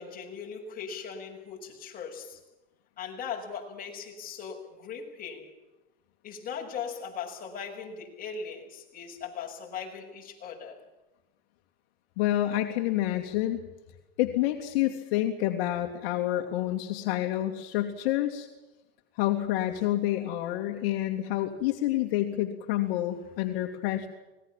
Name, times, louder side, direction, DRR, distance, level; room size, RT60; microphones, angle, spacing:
voice 1, 0.0-2.4 3.0-5.5 6.2-10.8, left 6 dB, 25° left, 0 dB, 6.8 m, -39 dB
voice 2, 12.2-13.6 14.2-18.5 19.2-24.1, left 14 dB, 65° left, 4 dB, 2.5 m, -28 dB
25.5 x 20.0 x 7.4 m, 1.1 s
supercardioid pair, 140°, 32 cm